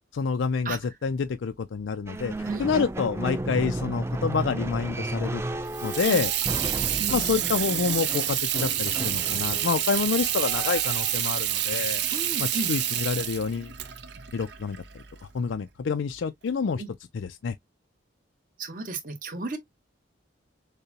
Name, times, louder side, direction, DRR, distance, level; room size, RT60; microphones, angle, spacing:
voice 1, 0.0-2.3 2.6-5.4 5.8-6.3 6.6-6.8 7.1-12.0 12.4-13.7 14.3-15.0 15.3-16.8 17.1-17.5, left 5 dB, 70° left, 0.4 m, -28 dB
sound 1, 2.1-11.1, right 1 dB, 15° right, 0.4 m, -34 dB
Water tap faucet / Sink (filling or washing), 5.7-15.2, right 11 dB, 60° right, 0.7 m, -28 dB
voice 2, 12.1-12.7 16.8-16.9 18.6-19.6, right 3 dB, 45° right, 1.2 m, -34 dB
6.6 x 2.2 x 2.8 m
head